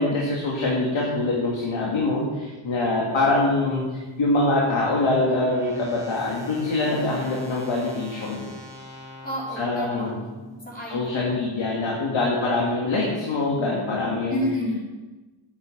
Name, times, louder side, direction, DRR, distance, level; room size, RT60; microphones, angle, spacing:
voice 1, 0.0-8.4 9.6-10.1 10.9-14.4, left 2 dB, 65° left, -4 dB, 2.8 m, -24 dB
sound 1, 3.7-10.8, left 1 dB, 5° right, 2.5 m, -43 dB
voice 2, 9.2-10.1 10.4-11.2 14.3-14.8, left 1 dB, 15° left, -6 dB, 4.3 m, -30 dB
9.5 x 8.8 x 8.1 m, 1.2 s
wide cardioid pair, 140°, 50 cm